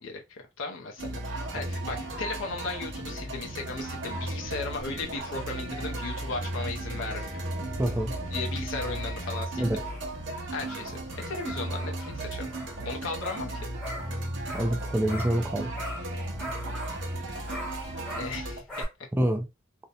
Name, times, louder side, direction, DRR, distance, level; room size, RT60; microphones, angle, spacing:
voice 1, 0.0-7.4 8.3-9.7 10.5-11.0 11.2-12.5 12.8-13.7 18.1-18.6, left 3 dB, 65° left, 0.5 m, -36 dB
sound 1, 1.0-18.6, right 1 dB, 60° right, 0.7 m, -35 dB
sound 2, 4.7-11.8, right 1 dB, 35° right, 1.0 m, -47 dB
voice 2, 7.8-8.1 9.6-9.8 14.5-15.7 19.2-19.4, right 1 dB, 10° right, 0.4 m, -26 dB
sound 3, 8.5-15.5 15.7-18.8, equal, 5° left, 0.9 m, -42 dB
2.5 x 2.1 x 2.7 m
head